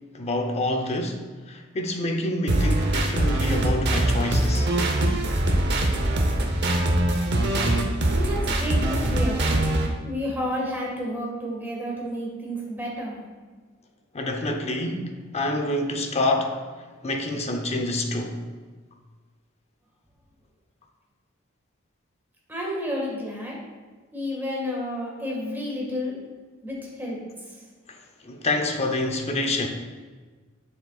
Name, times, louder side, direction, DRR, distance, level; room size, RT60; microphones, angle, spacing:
voice 1, 0.1-4.7 14.1-16.6 17.0-18.4 27.9-28.0 28.2-29.7, left 1 dB, 30° left, 0.6 m, -27 dB
sound 1, 2.5-9.9, right 1 dB, 55° right, 0.8 m, -22 dB
voice 2, 8.1-9.5 10.0-13.2 22.5-23.6 24.1-26.2 26.6-27.6, equal, 10° right, 1.6 m, -31 dB
7.4 x 6.6 x 2.4 m
head